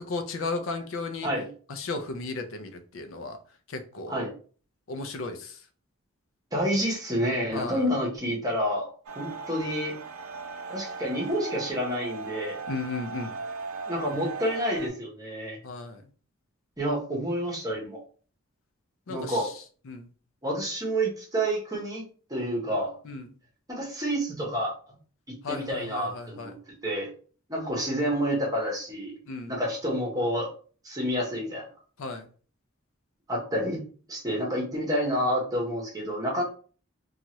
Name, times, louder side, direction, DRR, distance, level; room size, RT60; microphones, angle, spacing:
voice 1, 0.0-1.3 1.7-3.4 3.7-4.1 4.9-5.6 7.5-7.9 12.7-13.3 15.6-16.0 19.1-20.1 23.0-23.3 25.4-26.5 29.3-29.6 32.0-32.3 36.4-36.5, left 3 dB, 70° left, 7 dB, 0.5 m, -35 dB
voice 2, 6.5-8.9 9.2-10.0 10.7-12.6 13.9-15.6 16.8-18.0 19.1-19.5 20.4-22.0 22.3-22.9 23.7-24.7 25.5-26.5 26.8-27.1 27.5-29.1 29.5-30.5 30.8-31.6 33.3-36.4, equal, 15° right, -3 dB, 1.0 m, -29 dB
sound 1, 9.1-14.9, right 4 dB, 90° right, 0.5 m, -38 dB
2.7 x 2.4 x 2.9 m, 0.40 s
head